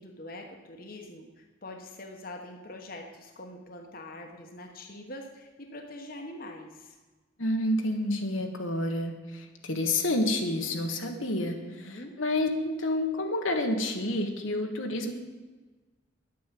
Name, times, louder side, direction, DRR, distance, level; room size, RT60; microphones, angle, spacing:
voice 1, 0.0-7.0 11.0-11.2 11.6-12.2, left 1 dB, 45° left, 3 dB, 1.2 m, -44 dB
voice 2, 7.4-15.1, left 1 dB, 80° left, 4 dB, 1.5 m, -29 dB
10.5 x 8.6 x 7.6 m, 1.2 s
head